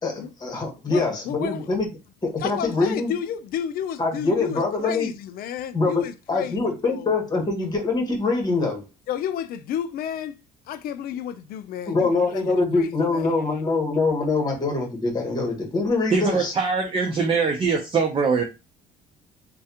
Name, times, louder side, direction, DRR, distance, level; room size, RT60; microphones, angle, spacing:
voice 1, 0.0-1.9 2.2-3.1 4.0-5.1 5.7-8.8 11.9-16.5, left 3 dB, 25° left, 1.3 m, -24 dB
voice 2, 0.9-1.7 2.4-7.1 9.1-10.4 10.7-13.3, left 9 dB, 60° left, 0.4 m, -32 dB
voice 3, 16.1-18.4, right 5 dB, 30° right, 0.6 m, -22 dB
3.3 x 2.2 x 2.8 m
cardioid pair, 110°, 17 cm